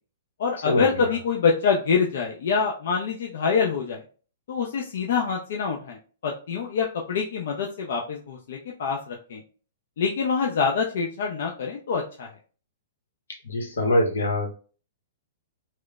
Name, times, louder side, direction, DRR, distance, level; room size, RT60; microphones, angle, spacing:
voice 1, 0.4-4.0 4.5-6.0 6.2-9.4 10.0-12.3, left 5 dB, 65° left, 0 dB, 0.4 m, -25 dB
voice 2, 13.4-14.5, left 1 dB, 90° left, 3 dB, 0.9 m, -23 dB
3.0 x 2.0 x 2.3 m, 0.39 s
hypercardioid pair, 140°, 0 cm